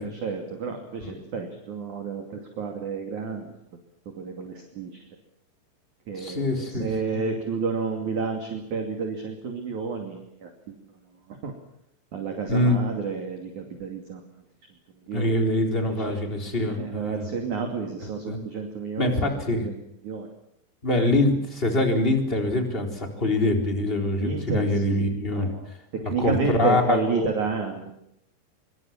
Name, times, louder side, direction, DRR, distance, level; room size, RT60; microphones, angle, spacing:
voice 1, 0.0-3.5 4.2-4.9 6.1-10.7 11.3-11.5 12.1-14.4 15.1-15.3 15.8-16.2 16.8-19.7 20.0-20.3 24.2-25.1 25.4-25.7 26.1-27.9, right 5 dB, 45° right, 3 dB, 3.6 m, -30 dB
voice 2, 6.1-7.3 12.5-12.8 15.1-17.3 18.0-18.4 19.0-19.7 20.8-25.5 26.0-27.3, left 2 dB, 15° left, 3 dB, 3.7 m, -24 dB
25.5 x 24.0 x 7.4 m, 0.79 s
omnidirectional pair, 5.3 m